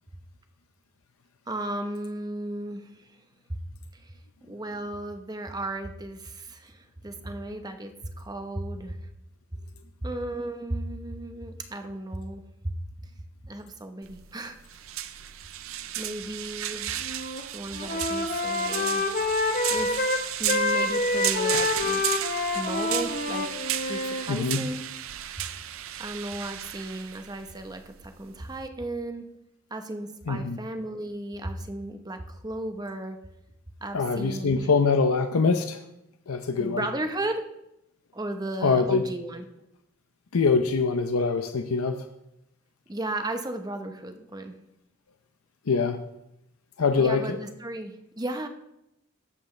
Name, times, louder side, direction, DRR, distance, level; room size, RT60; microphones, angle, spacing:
voice 1, 1.5-3.2 3.9-4.1 4.5-9.0 10.0-12.7 13.4-14.6 16.0-16.9 17.5-19.1 19.7-20.1 20.4-22.0 22.5-23.5 23.7-24.8 26.0-29.2 29.7-33.2 33.8-34.7 36.6-37.5 38.1-39.4 42.9-44.6 47.0-48.5, right 1 dB, 20° right, 6 dB, 0.9 m, -35 dB
sound 1, 14.0-28.7, right 12 dB, 70° right, 0.5 m, -34 dB
Wind instrument woodwind instrument, 17.0-17.4 17.7-24.3, left 2 dB, 40° left, 0.9 m, -27 dB
voice 2, 24.3-24.7 30.3-30.6 33.9-35.8 36.3-36.9 38.6-39.0 40.3-42.0 45.7-46.0 46.8-47.4, left 4 dB, 85° left, 7 dB, 0.6 m, -24 dB
18.5 x 7.9 x 3.2 m, 0.85 s
head